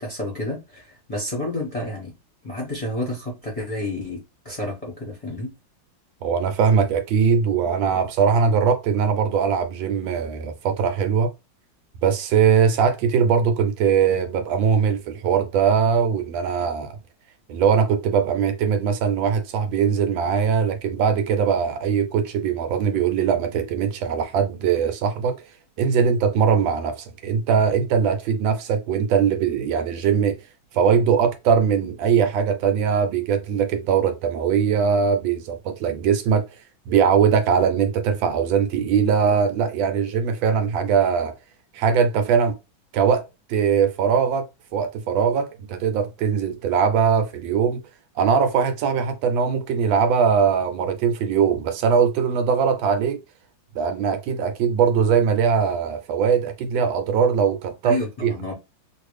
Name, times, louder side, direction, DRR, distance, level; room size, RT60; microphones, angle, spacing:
voice 1, 0.0-2.1 2.4-4.2 4.4-5.5 57.8-58.5, left 1 dB, 25° left, 0.9 m, -30 dB
voice 2, 6.2-11.3 12.0-17.0 17.5-25.4 25.8-30.4 30.7-36.5 36.9-41.3 41.7-42.5 42.9-43.2 43.5-44.5 44.7-47.8 48.2-53.2 53.8-58.3, right 6 dB, 75° right, 1.3 m, -21 dB
3.1 x 2.6 x 3.1 m
omnidirectional pair, 2.2 m